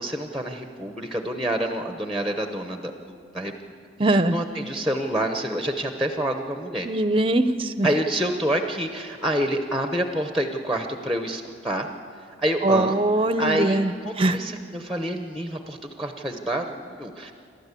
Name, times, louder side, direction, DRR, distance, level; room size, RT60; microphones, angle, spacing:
voice 1, 0.0-3.5 4.1-6.9 7.8-11.9 12.4-13.0 13.4-17.3, right 1 dB, ahead, 5 dB, 0.9 m, -27 dB
voice 2, 4.0-4.4 6.8-7.9 12.6-14.4, right 1 dB, 25° right, 11 dB, 0.7 m, -22 dB
28.0 x 13.0 x 8.4 m, 2.4 s
head